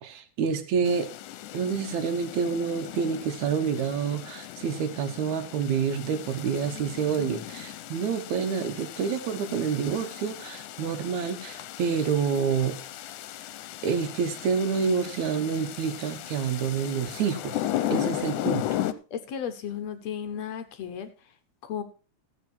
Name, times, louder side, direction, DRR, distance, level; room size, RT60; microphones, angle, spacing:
voice 1, 0.0-1.1 1.5-12.8 13.8-17.6 17.9-18.7, right 6 dB, 75° right, 8 dB, 2.4 m, -28 dB
sound 1, 0.8-18.9, left 13 dB, 85° left, 2.2 m, -36 dB
voice 2, 19.1-21.1 21.6-21.8, left 8 dB, 70° left, 9 dB, 1.9 m, -34 dB
14.5 x 8.1 x 4.4 m, 0.35 s
omnidirectional pair, 3.5 m